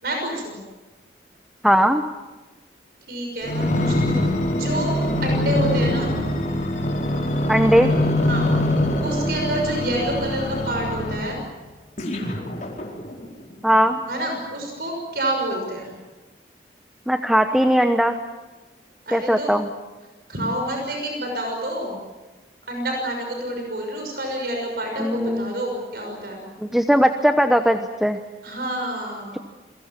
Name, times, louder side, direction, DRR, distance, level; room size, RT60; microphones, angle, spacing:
voice 1, 0.0-0.6 3.1-5.0 5.2-6.2 8.2-8.5 9.0-11.4 14.1-15.9 19.1-19.5 20.3-22.0 22.7-26.4 28.4-29.4, right 1 dB, 60° right, 2 dB, 6.2 m, -28 dB
voice 2, 1.6-2.0 7.5-7.9 13.6-14.0 17.1-18.2 19.1-19.7 25.0-25.5 26.6-28.2, equal, ahead, 7 dB, 0.9 m, -19 dB
sound 1, 3.4-11.4 12.0-13.3 13.9-14.0, left 1 dB, 45° left, 4.8 m, -23 dB
29.5 x 23.0 x 7.5 m, 1.2 s
head